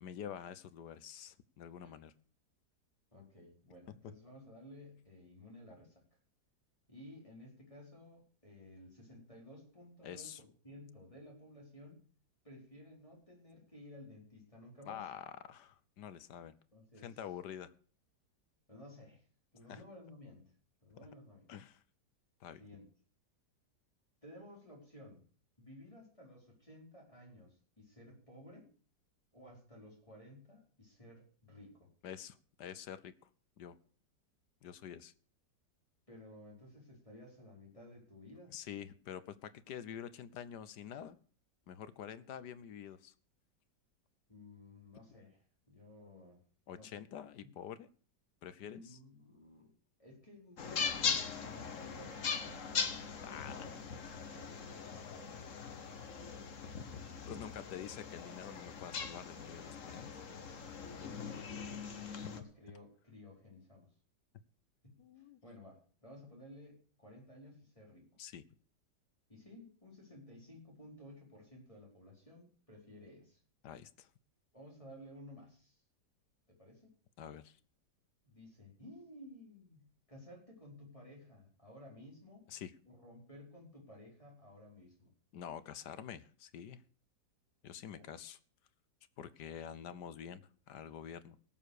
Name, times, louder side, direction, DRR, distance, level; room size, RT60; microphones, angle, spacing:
voice 1, 0.0-2.1 10.0-10.4 14.9-16.5 17.0-17.7 19.7-19.8 21.5-21.8 22.4-22.6 32.0-33.1 33.6-33.8 34.6-35.1 38.5-41.2 41.7-43.1 46.7-47.9 48.4-49.0 53.2-53.7 57.3-60.1 62.2-62.4 65.0-65.4 68.2-68.4 73.6-74.1 77.2-77.6 82.5-82.7 85.3-86.8 87.6-88.4 89.2-91.4, left 9 dB, 75° left, 15 dB, 1.4 m, -47 dB
voice 2, 3.1-6.0 6.9-12.0 12.4-15.1 16.7-17.1 18.7-19.3 19.5-20.5 20.8-21.5 22.6-22.8 24.2-25.2 25.6-28.7 29.3-31.9 36.1-38.5 44.3-46.4 46.7-47.0 47.4-47.5 48.6-49.7 50.0-53.2 54.2-54.6 55.1-55.5 62.3-63.9 64.8-68.1 69.3-73.4 74.5-75.8 76.5-76.9 78.2-82.5 82.9-85.1 88.0-88.2, left 1 dB, 20° left, -3 dB, 4.7 m, -55 dB
sound 1, 50.6-62.4, left 6 dB, 50° left, 1.5 m, -40 dB
17.5 x 7.3 x 6.5 m, 0.43 s
omnidirectional pair, 1.9 m